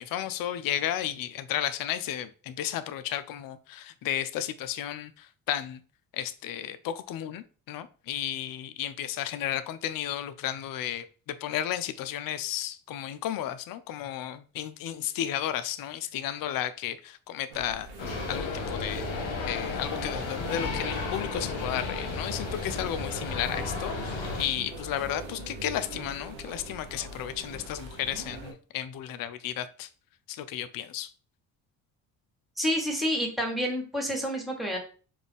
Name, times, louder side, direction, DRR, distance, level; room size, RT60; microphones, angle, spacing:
voice 1, 0.0-5.8 6.1-17.9 18.3-29.9 30.3-31.1, left 11 dB, 55° left, 0.5 m, -33 dB
sound 1, 17.5-28.5, right 2 dB, 90° right, 1.0 m, -42 dB
sound 2, 18.0-24.4, left 4 dB, 80° left, 0.9 m, -34 dB
voice 2, 32.6-34.8, equal, ahead, 1.5 m, -29 dB
3.6 x 2.4 x 3.6 m
supercardioid pair, 55°, 43 cm